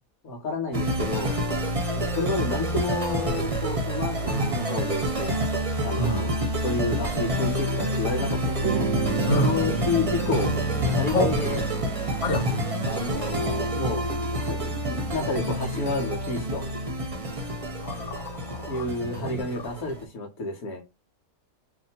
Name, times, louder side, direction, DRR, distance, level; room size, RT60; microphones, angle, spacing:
voice 1, 0.2-1.4 1.9-5.4 5.8-6.3 6.6-8.9 9.3-10.5 10.9-11.6 12.8-14.0 14.3-16.6 18.7-20.8, left 3 dB, 80° left, 1.4 m, -30 dB
sound 1, 0.7-20.0, equal, 30° right, 0.7 m, -28 dB
voice 2, 6.0-6.3 9.3-9.5 11.1-11.4 12.2-12.5 17.8-19.5, right 1 dB, 65° left, 1.3 m, -27 dB
sound 2, 8.6-16.3, right 3 dB, 65° right, 0.7 m, -33 dB
2.8 x 2.6 x 4.2 m
omnidirectional pair, 1.5 m